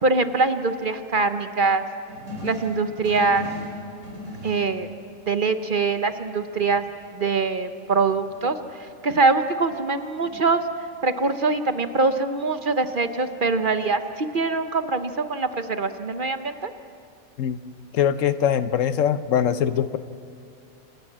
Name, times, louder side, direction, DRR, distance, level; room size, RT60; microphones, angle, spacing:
voice 1, 0.0-1.8 2.4-3.5 4.4-4.9 5.3-6.8 7.1-8.6 9.0-10.6 11.0-16.7, right 3 dB, 45° right, 9 dB, 0.9 m, -23 dB
sound 1, 2.1-5.1 6.0-6.2 6.5-8.6 10.0-11.2 11.9-13.8, left 2 dB, 70° right, 5.0 m, -39 dB
voice 2, 17.9-20.0, left 9 dB, 75° left, 12 dB, 1.1 m, -22 dB
27.5 x 19.0 x 7.4 m, 2.4 s
omnidirectional pair, 1.4 m